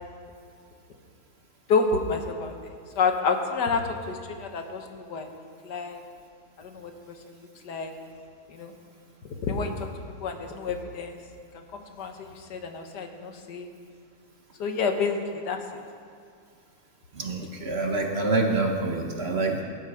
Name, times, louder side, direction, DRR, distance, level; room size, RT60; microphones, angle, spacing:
voice 1, 1.7-2.7 3.0-5.3 5.6-6.0 6.6-6.9 7.6-7.9 8.5-8.7 9.4-9.9 10.2-11.2 11.7-13.7 14.6-15.6, left 4 dB, 75° left, 5 dB, 1.8 m, -29 dB
voice 2, 17.2-19.6, right 2 dB, 40° right, 2 dB, 1.3 m, -26 dB
18.0 x 11.5 x 4.9 m, 2.3 s
omnidirectional pair, 1.8 m